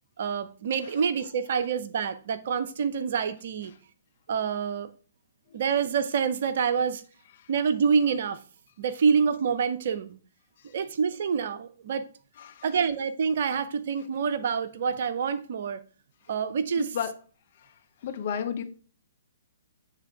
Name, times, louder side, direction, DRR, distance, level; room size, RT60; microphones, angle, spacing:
voice 1, 0.2-3.7 4.3-4.9 5.5-7.0 7.5-8.4 8.8-10.2 10.7-12.0 12.6-15.8 16.3-17.0, right 6 dB, 50° right, 0.6 m, -27 dB
voice 2, 16.8-17.1 18.0-18.6, left 8 dB, 45° left, 0.9 m, -31 dB
7.5 x 3.4 x 4.7 m
figure-of-eight pair, 120°, 0 cm